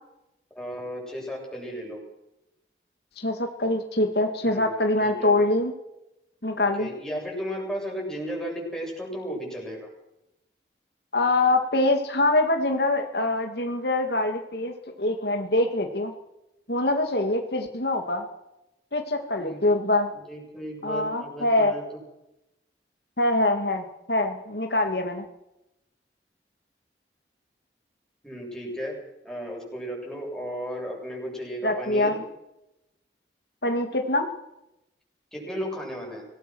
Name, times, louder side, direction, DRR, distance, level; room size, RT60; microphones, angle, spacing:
voice 1, 0.5-2.0 4.4-5.3 6.6-9.9 19.4-19.6 20.3-21.8 28.2-29.0 29.2-32.2 35.3-36.3, equal, 5° left, -2 dB, 7.9 m, -34 dB
voice 2, 3.2-5.7 6.4-6.9 11.1-16.1 16.7-18.3 18.9-20.1 20.8-21.7 23.2-25.2 31.6-32.2 33.6-34.3, left 2 dB, 70° left, 4 dB, 2.3 m, -24 dB
25.5 x 19.5 x 6.3 m, 0.88 s
head